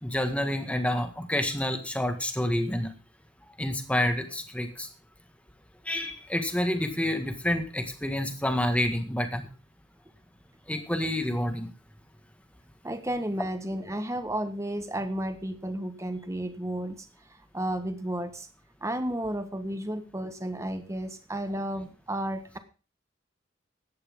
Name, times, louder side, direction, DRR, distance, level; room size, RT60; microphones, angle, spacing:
voice 1, 0.0-2.9 3.6-4.9 5.9-9.5 10.7-11.7, left 1 dB, 5° left, 6 dB, 1.8 m, -28 dB
voice 2, 12.8-16.9 17.5-18.5 18.8-22.6, right 1 dB, 15° right, 9 dB, 1.4 m, -32 dB
16.5 x 11.5 x 3.8 m, 0.34 s
head